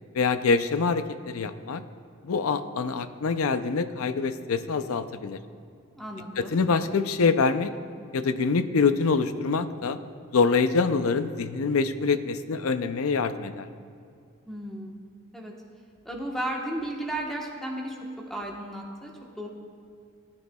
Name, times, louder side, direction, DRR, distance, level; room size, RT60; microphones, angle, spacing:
voice 1, 0.1-1.8 2.2-5.4 6.4-7.7 8.1-10.0 10.3-13.7, left 4 dB, 85° left, 11 dB, 0.5 m, -25 dB
voice 2, 5.9-6.6 14.5-15.0 15.3-15.5 16.0-18.0 18.3-19.1 19.4-19.5, right 1 dB, ahead, -1 dB, 1.1 m, -34 dB
19.0 x 9.7 x 2.3 m, 2.3 s
head